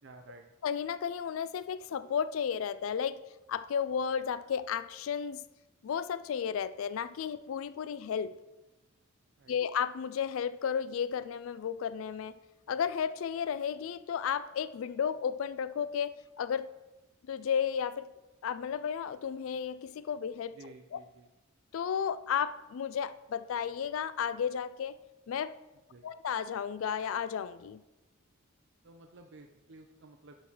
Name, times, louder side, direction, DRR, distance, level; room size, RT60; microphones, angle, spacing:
voice 1, 0.0-0.5 9.4-9.5 20.5-21.3 25.9-26.1 28.8-30.3, right 2 dB, 60° right, 4 dB, 0.6 m, -53 dB
voice 2, 0.6-3.2 3.5-5.4 5.8-8.3 9.5-12.3 12.7-16.7 17.3-18.1 18.4-20.5 20.9-21.0 21.7-25.0 25.3-25.5 26.0-27.8, left 7 dB, 75° left, 14 dB, 0.4 m, -33 dB
11.5 x 3.9 x 6.1 m, 1.0 s
head